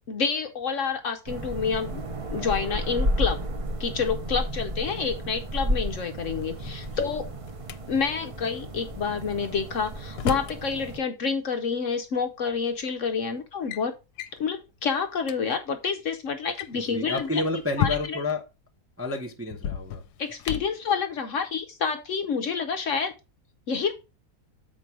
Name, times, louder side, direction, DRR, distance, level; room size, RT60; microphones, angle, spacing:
voice 1, 0.1-2.0 2.3-3.4 3.8-7.3 7.9-13.9 14.4-17.4 17.8-18.2 20.2-23.1 23.7-23.9, left 5 dB, 60° left, 0.9 m, -28 dB
sound 1, 1.3-11.0, equal, 55° right, 0.3 m, -32 dB
Drawer open or close, 6.4-7.8 9.4-10.6 11.9-12.0 12.8-13.1 13.4-13.8 14.2-14.4 14.9-15.0 15.2-15.4 16.4-18.4 19.5-20.8, left 10 dB, 80° left, 1.1 m, -34 dB
voice 2, 16.7-18.4 19.0-20.0, left 2 dB, 15° right, 0.6 m, -30 dB
7.2 x 4.5 x 4.5 m
omnidirectional pair, 1.7 m